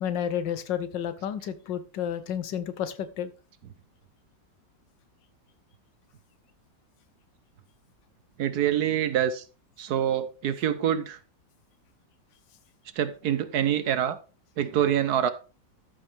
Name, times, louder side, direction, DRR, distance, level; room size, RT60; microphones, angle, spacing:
voice 1, 0.0-3.3, left 9 dB, 80° left, 1.5 m, -31 dB
voice 2, 8.4-9.4 9.8-11.2 13.0-14.2 14.6-15.3, right 10 dB, 65° right, 1.2 m, -25 dB
13.5 x 5.5 x 3.4 m
omnidirectional pair, 2.0 m